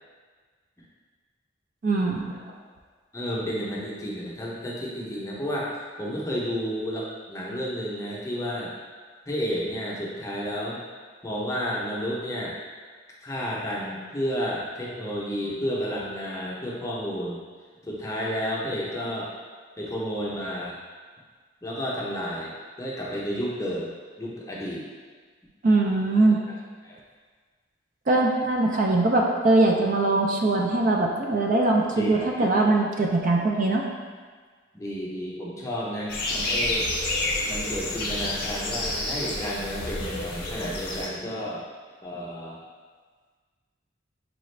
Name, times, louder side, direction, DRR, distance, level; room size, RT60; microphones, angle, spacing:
voice 1, 1.8-2.4 25.6-26.4 28.1-33.8, right 2 dB, 45° right, 0 dB, 0.4 m, -22 dB
voice 2, 3.1-8.7 9.3-10.8 11.2-12.6 13.2-17.4 17.8-19.3 19.8-20.8 21.6-23.9 24.2-24.8 26.8-27.0 32.0-32.7 34.7-36.9 37.5-41.6 42.0-42.6, equal, 15° left, -5 dB, 0.6 m, -31 dB
sound 1, 36.1-41.1, left 2 dB, 55° left, 0.7 m, -29 dB
4.9 x 2.4 x 3.2 m, 1.5 s
head